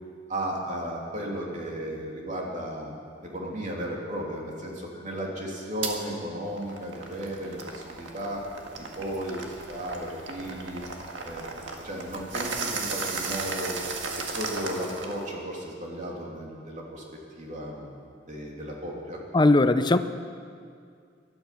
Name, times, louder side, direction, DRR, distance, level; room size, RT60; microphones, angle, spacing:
voice 1, 0.3-2.9 3.2-8.4 8.8-10.8 11.2-11.4 11.8-13.7 14.1-17.0 17.4-17.9 18.2-19.2, right 1 dB, 40° right, -2 dB, 3.0 m, -34 dB
sound 1, 5.8-6.0 6.5-15.3, right 4 dB, 80° right, 1.8 m, -35 dB
voice 2, 19.3-20.0, left 2 dB, 25° left, 11 dB, 0.6 m, -19 dB
19.5 x 12.5 x 5.9 m, 2.2 s
head